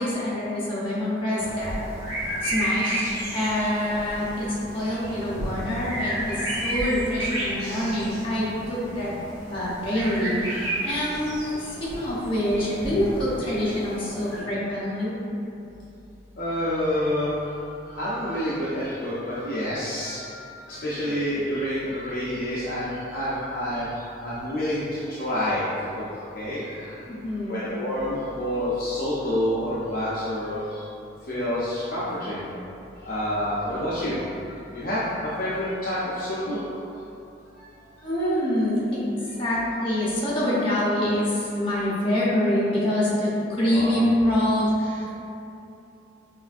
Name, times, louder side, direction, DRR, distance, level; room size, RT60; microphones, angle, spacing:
voice 1, 0.0-1.8 2.4-3.0 3.3-9.1 9.5-15.2 27.1-27.5 38.0-39.0 39.4-45.1, left 1 dB, 30° left, -9 dB, 0.9 m, -25 dB
sound 1, 1.4-14.4, right 1 dB, 20° right, 1.5 m, -32 dB
voice 2, 16.4-17.3 17.9-20.4 20.7-23.9 24.2-25.7 26.0-26.1 26.3-26.9 27.5-30.8 31.3-32.4 33.1-34.2 34.7-36.6 43.7-44.1, left 1 dB, 50° left, -10 dB, 0.5 m, -28 dB
5.6 x 2.5 x 2.5 m, 2.9 s
head